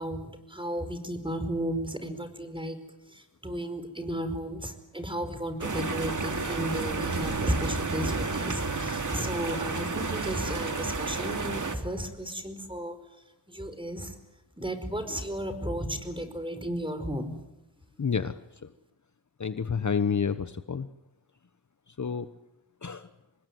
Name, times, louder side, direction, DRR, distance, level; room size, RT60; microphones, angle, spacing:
voice 1, 0.0-2.8 3.1-13.0 13.5-14.1 14.6-17.3, equal, 10° right, 9 dB, 4.8 m, -34 dB
sound 1, 5.6-11.8, right 4 dB, 45° right, 2.8 m, -31 dB
voice 2, 18.0-18.4 19.4-20.9 22.0-22.3 22.8-23.1, left 6 dB, 40° left, 11 dB, 1.2 m, -29 dB
26.5 x 20.5 x 9.5 m, 0.94 s
cardioid pair, 60°, 43 cm